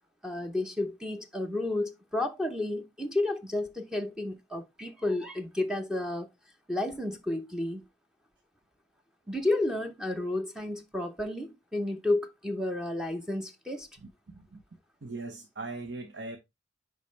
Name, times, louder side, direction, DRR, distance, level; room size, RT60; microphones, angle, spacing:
voice 1, 0.2-6.3 6.7-7.8 9.3-13.9, left 2 dB, 5° right, 0.8 m, -31 dB
voice 2, 14.0-14.6 15.0-16.4, right 3 dB, 70° right, 1.0 m, -40 dB
10.5 x 3.8 x 3.3 m
head